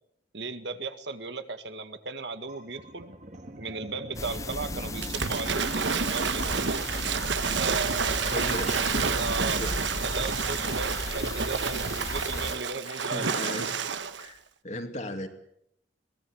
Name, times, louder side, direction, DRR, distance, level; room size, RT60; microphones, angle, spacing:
voice 1, 0.3-3.1 3.6-6.9 7.5-8.5 9.1-9.6 10.0-13.5, right 4 dB, 75° right, 9 dB, 1.8 m, -36 dB
sound 1, 2.5-7.3, right 1 dB, 40° right, 2.1 m, -40 dB
sound 2, 4.1-12.6, left 2 dB, 20° left, 0.9 m, -35 dB
Waves surf / Splash splatter, 5.0-14.3, right 6 dB, 90° right, 1.2 m, -29 dB
voice 2, 8.2-9.8 12.9-13.8 14.2-14.4 14.6-15.3, left 1 dB, 40° left, 6 dB, 2.6 m, -36 dB
23.0 x 19.5 x 8.0 m, 0.73 s
head